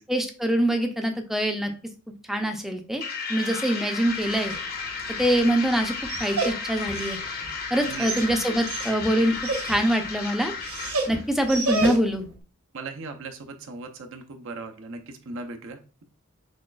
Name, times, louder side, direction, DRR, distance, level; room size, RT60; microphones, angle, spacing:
voice 1, 0.0-1.7 2.3-3.0 3.3-4.5 5.2-5.9 6.2-7.2 7.7-9.3 9.6-10.5 11.1-12.3, right 1 dB, ahead, 4 dB, 0.5 m, -24 dB
sound 1, 3.0-11.3, left 5 dB, 45° left, 0.6 m, -34 dB
Dog, 4.0-12.3, right 2 dB, 85° right, 0.9 m, -33 dB
voice 2, 12.7-16.0, right 3 dB, 65° right, 5 dB, 0.6 m, -38 dB
6.1 x 2.3 x 2.3 m, 0.36 s
head